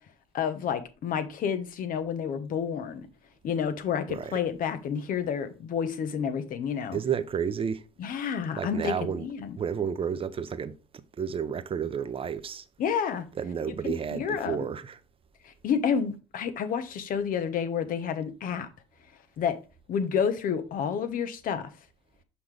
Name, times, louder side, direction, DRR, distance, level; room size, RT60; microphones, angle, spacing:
voice 1, 0.3-3.1 3.4-7.0 8.0-9.6 12.8-13.3 13.8-14.7 15.4-18.7 19.4-19.6 19.9-21.7, left 7 dB, 55° left, 1.1 m, -30 dB
voice 2, 6.9-7.8 8.6-9.3 9.6-12.6 13.4-15.0, right 7 dB, 30° right, 0.8 m, -31 dB
5.8 x 5.7 x 3.3 m
hypercardioid pair, 70°, 17 cm